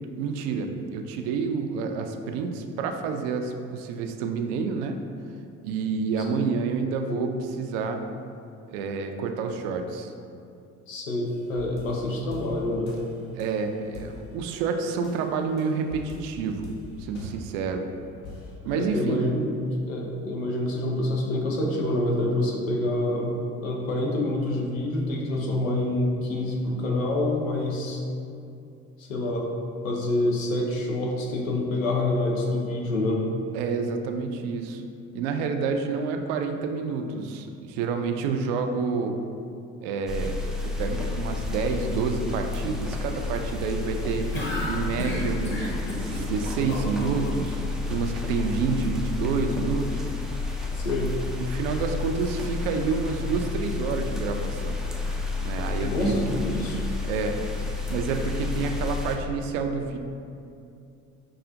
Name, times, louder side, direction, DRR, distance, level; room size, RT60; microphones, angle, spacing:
voice 1, 0.2-5.0 5.6-8.0 8.7-10.1 13.4-16.7 17.0-17.9 18.6-19.3 33.5-34.8 35.1-39.2 39.8-40.4 40.6-44.3 44.6-47.6 47.9-50.0 51.4-54.8 55.4-56.2 57.1-57.4 57.9-60.0, right 5 dB, 65° right, 5 dB, 0.5 m, -28 dB
voice 2, 10.9-13.0 18.7-19.4 19.9-23.4 23.6-28.0 29.0-29.5 29.8-33.2 50.7-51.2 55.8-56.8, left 1 dB, 85° left, -1 dB, 0.7 m, -27 dB
sound 1, 11.3-13.6 13.9-14.6 15.0-17.9 18.2-18.5, left 2 dB, 65° left, 0.9 m, -43 dB
sound 2, 40.1-59.2, left 3 dB, ahead, 0.3 m, -31 dB
sound 3, 44.3-47.3, left 1 dB, 30° left, 1.0 m, -32 dB
5.8 x 2.4 x 2.5 m, 2.5 s
hypercardioid pair, 60°, 39 cm